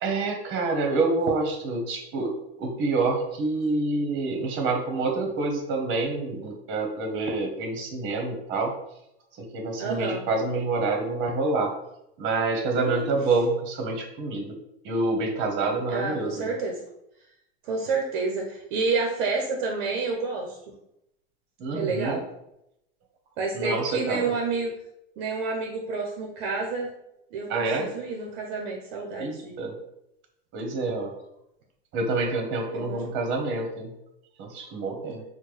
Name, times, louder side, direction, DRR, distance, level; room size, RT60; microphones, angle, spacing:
voice 1, 0.0-8.7 9.4-11.7 12.2-14.5 14.8-16.5 21.6-22.2 23.5-24.3 27.5-27.9 29.2-29.7 30.5-31.1 31.9-33.9 34.4-35.2, right 3 dB, 40° right, 3 dB, 1.0 m, -27 dB
voice 2, 9.8-10.2 12.8-13.1 15.9-16.8 17.6-20.6 21.7-22.2 23.4-24.7 25.2-26.9 27.3-29.6 32.7-33.0, right 4 dB, 55° right, 0 dB, 0.8 m, -29 dB
4.4 x 2.2 x 3.2 m, 0.81 s
hypercardioid pair, 115°, 31 cm